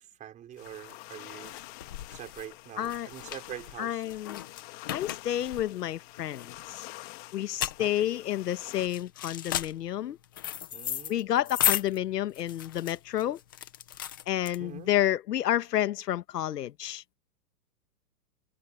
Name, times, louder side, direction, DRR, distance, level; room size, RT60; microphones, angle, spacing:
voice 1, 0.0-1.5 2.1-4.0 7.8-8.1 10.7-11.3 14.6-14.9, right 10 dB, 15° right, 4.8 m, -44 dB
sound 1, 0.6-8.9, left 21 dB, 30° left, 2.3 m, -47 dB
sound 2, 0.6-15.0, left 11 dB, 15° left, 0.5 m, -36 dB
voice 2, 2.8-3.1 3.8-4.4 4.9-6.9 7.3-10.2 11.1-13.4 14.3-17.0, left 12 dB, 75° left, 1.4 m, -30 dB
open air
hypercardioid pair, 170°, 48 cm